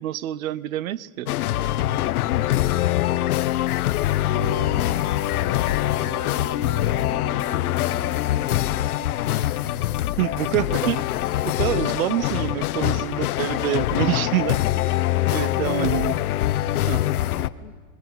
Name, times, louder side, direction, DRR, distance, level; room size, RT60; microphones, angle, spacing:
voice 1, 0.0-1.3 10.2-11.0 11.4-15.0 15.3-16.1 16.9-17.0, right 13 dB, 70° right, 21 dB, 0.8 m, -26 dB
sound 1, 1.3-17.5, left 14 dB, 85° left, 0.9 m, -24 dB
voice 2, 2.4-4.6 5.3-7.4 8.5-9.5 11.7-11.9 12.4-12.9 15.3-17.7, left 13 dB, 55° left, 9 dB, 1.5 m, -40 dB
sound 2, 4.3-15.3, left 5 dB, 40° left, 2.4 m, -38 dB
29.0 x 22.0 x 6.1 m, 1.5 s
supercardioid pair, 155°, 43 cm